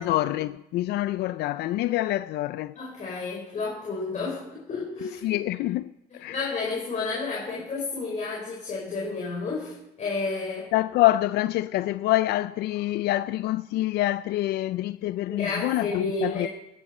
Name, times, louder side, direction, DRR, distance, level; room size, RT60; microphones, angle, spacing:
voice 1, 0.0-2.8 5.2-6.4 10.7-16.5, left 16 dB, 75° left, 0.4 m, -26 dB
voice 2, 2.8-5.4 6.3-10.7 15.3-16.5, left 3 dB, 45° left, 4.5 m, -31 dB
22.5 x 11.0 x 4.2 m
cardioid pair, 110°, 17 cm